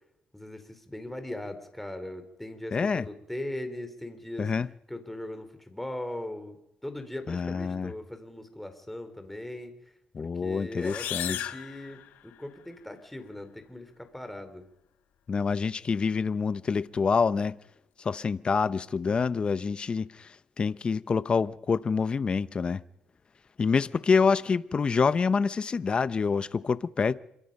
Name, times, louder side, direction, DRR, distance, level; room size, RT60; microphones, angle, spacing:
voice 1, 0.3-4.5 4.9-9.7 10.2-14.7, left 1 dB, 5° left, 3.6 m, -39 dB
voice 2, 2.7-3.1 4.4-4.7 7.3-7.9 10.1-11.5 15.3-17.6 18.0-22.8 23.6-27.1, left 5 dB, 35° left, 0.8 m, -27 dB
sound 1, 10.8-12.6, left 12 dB, 80° left, 1.4 m, -36 dB
27.0 x 23.5 x 5.4 m
cardioid pair, 110°, 3 cm